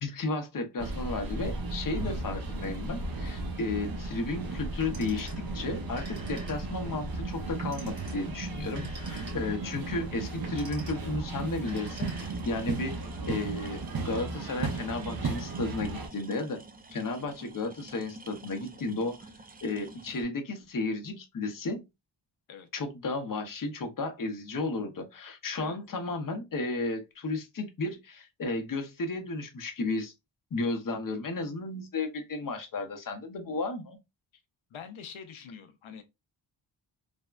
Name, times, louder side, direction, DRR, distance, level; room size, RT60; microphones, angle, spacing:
voice 1, 0.0-16.6 16.9-19.2 19.6-21.8 22.7-30.1 30.5-34.0, left 3 dB, 45° left, 0.7 m, -33 dB
sound 1, 0.8-16.1, right 3 dB, 50° right, 0.7 m, -35 dB
Telephone, 4.7-5.5 5.8-6.9 7.6-9.7 10.3-11.1 11.6-12.6, right 2 dB, 70° right, 1.4 m, -47 dB
sound 2, 11.8-20.2, right 2 dB, 20° right, 0.3 m, -50 dB
voice 2, 34.7-36.0, left 7 dB, 90° left, 0.5 m, -45 dB
3.4 x 2.1 x 2.3 m
wide cardioid pair, 95°, 47 cm